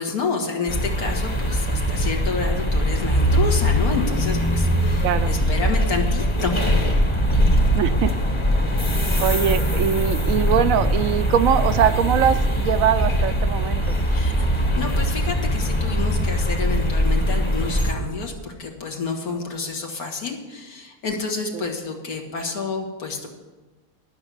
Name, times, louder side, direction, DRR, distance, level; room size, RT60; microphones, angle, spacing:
voice 1, 0.0-6.6 14.1-23.3, left 4 dB, 80° left, 2 dB, 2.1 m, -29 dB
sound 1, 0.7-17.9, equal, 20° left, 1.0 m, -21 dB
voice 2, 5.0-5.3 7.7-8.1 9.2-14.0 21.5-21.6, right 9 dB, 70° right, 12 dB, 0.9 m, -22 dB
11.5 x 6.1 x 8.2 m, 1.2 s
omnidirectional pair, 1.5 m